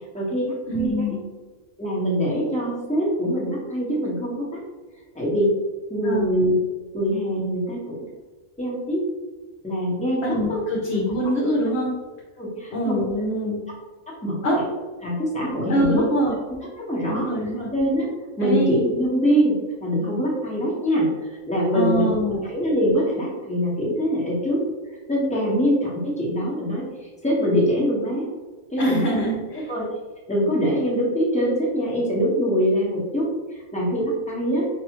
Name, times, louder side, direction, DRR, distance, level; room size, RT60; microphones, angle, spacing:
voice 1, 0.1-1.2 1.8-4.6 5.1-5.6 5.9-6.6 6.9-7.9 8.6-9.0 9.6-10.6 12.4-13.0 14.1-14.6 15.0-16.1 16.9-17.3 17.7-18.1 18.4-22.1 22.4-24.6 25.1-26.8 27.2-28.3 28.7-29.2 29.5-29.9 30.3-34.7, equal, 5° left, -6 dB, 1.1 m, -23 dB
voice 2, 0.7-1.2 6.0-6.4 10.2-12.0 12.7-13.6 14.4-14.6 15.7-16.4 17.1-17.7 18.4-18.8 21.7-22.4 28.8-29.7, right 1 dB, 60° left, -4 dB, 1.0 m, -24 dB
4.9 x 2.7 x 2.9 m, 1.3 s
omnidirectional pair, 1.4 m